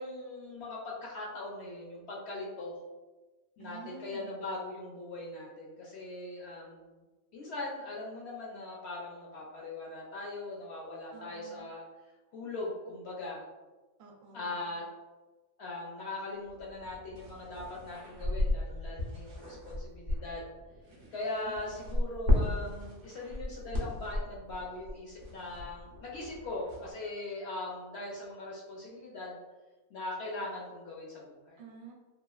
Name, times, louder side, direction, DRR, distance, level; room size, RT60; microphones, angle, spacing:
voice 1, 0.0-2.8 3.6-7.0 7.3-11.8 12.3-13.4 14.3-14.8 15.6-20.5 21.1-29.4 29.9-31.6, left 2 dB, 65° left, -3 dB, 0.7 m, -40 dB
voice 2, 3.6-4.3 11.1-11.7 14.0-14.8 21.5-21.6 31.6-31.9, right 5 dB, 80° right, 0 dB, 1.0 m, -50 dB
sound 1, 16.5-26.9, left 1 dB, 50° right, 0.7 m, -35 dB
2.9 x 2.3 x 2.3 m, 1.2 s
omnidirectional pair, 1.5 m